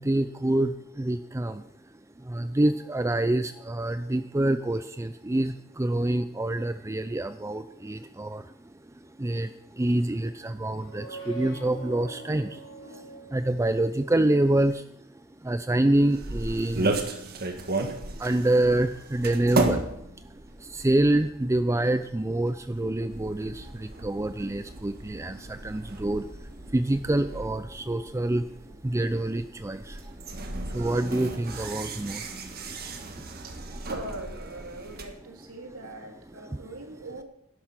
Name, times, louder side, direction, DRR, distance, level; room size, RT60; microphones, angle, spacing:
voice 1, 0.0-1.6 2.2-8.5 9.2-14.8 15.4-17.1 17.5-17.6 18.1-19.9 20.6-28.5 28.8-33.4 36.5-36.6, right 1 dB, 15° right, 11 dB, 0.4 m, -27 dB
sound 1, 10.7-14.3, right 3 dB, 65° left, 4.8 m, -43 dB
sound 2, 15.9-35.0, right 2 dB, 45° right, 1.6 m, -35 dB
voice 2, 33.4-37.2, right 2 dB, 80° right, 2 dB, 2.9 m, -41 dB
11.5 x 11.0 x 6.0 m, 0.73 s
head